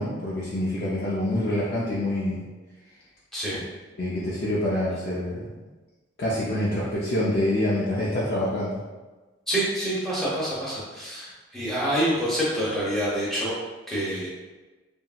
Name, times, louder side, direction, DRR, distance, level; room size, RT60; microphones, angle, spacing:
voice 1, 0.0-2.4 4.0-5.5 6.2-8.8, left 1 dB, 60° left, -7 dB, 0.5 m, -26 dB
voice 2, 9.5-13.5 13.9-14.3, right 1 dB, ahead, -9 dB, 0.8 m, -27 dB
2.8 x 2.6 x 2.4 m, 1.2 s
head